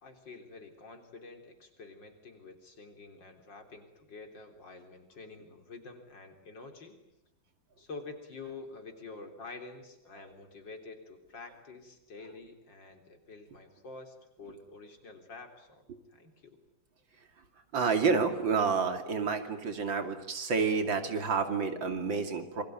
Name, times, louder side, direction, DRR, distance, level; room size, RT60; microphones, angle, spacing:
voice 1, 0.0-7.0 7.8-16.6, left 3 dB, 70° left, 5 dB, 4.3 m, -48 dB
voice 2, 17.7-22.6, right 5 dB, 90° right, 7 dB, 3.3 m, -29 dB
27.5 x 22.5 x 9.2 m, 0.89 s
omnidirectional pair, 2.0 m